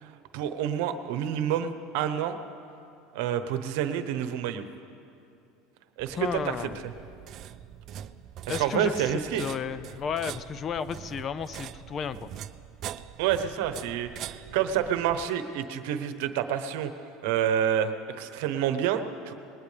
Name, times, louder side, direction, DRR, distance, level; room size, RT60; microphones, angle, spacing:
voice 1, 0.0-2.4 3.1-4.6 6.0-6.5 8.5-9.4 13.2-16.9 17.2-19.3, right 9 dB, 75° right, 9 dB, 0.9 m, -28 dB
sound 1, 6.0-15.3, right 11 dB, 50° right, 0.4 m, -43 dB
voice 2, 6.2-6.8 8.5-12.3, left 7 dB, 35° left, 15 dB, 0.5 m, -33 dB
20.0 x 19.0 x 3.4 m, 2.5 s
supercardioid pair, 115°, 0 cm